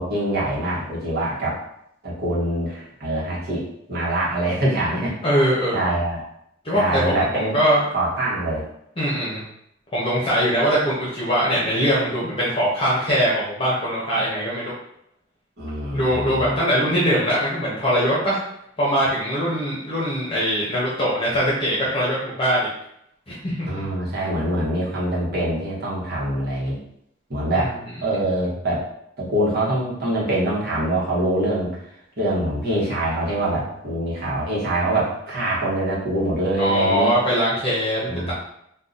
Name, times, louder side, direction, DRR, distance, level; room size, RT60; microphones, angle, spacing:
voice 1, 0.0-1.6 2.0-5.1 5.7-6.2 6.7-7.6 7.9-8.6 15.6-16.6 23.7-26.8 27.3-27.7 28.0-28.9 29.2-31.8 32.2-37.1 38.1-38.3, right 1 dB, 55° right, -6 dB, 1.1 m, -24 dB
voice 2, 5.2-5.8 6.6-7.8 9.0-9.4 9.9-14.7 15.9-18.4 18.8-22.7 23.3-23.7 27.5-27.7 36.6-38.3, equal, 25° left, -7 dB, 0.8 m, -22 dB
2.7 x 2.3 x 3.7 m, 0.75 s
head